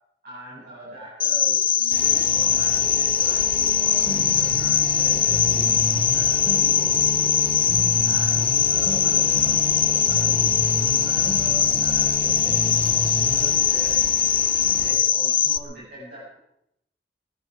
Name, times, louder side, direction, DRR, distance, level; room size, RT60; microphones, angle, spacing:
voice 1, 0.2-7.3 8.0-14.0 14.6-16.4, equal, 60° right, -9 dB, 7.8 m, -42 dB
Cricket, 1.2-15.6, left 9 dB, 30° left, 0.6 m, -21 dB
sound 1, 1.9-14.9, right 1 dB, 40° right, 3.0 m, -36 dB
sound 2, 4.1-13.7, equal, 20° right, 5.1 m, -32 dB
22.0 x 12.5 x 5.0 m, 0.78 s
head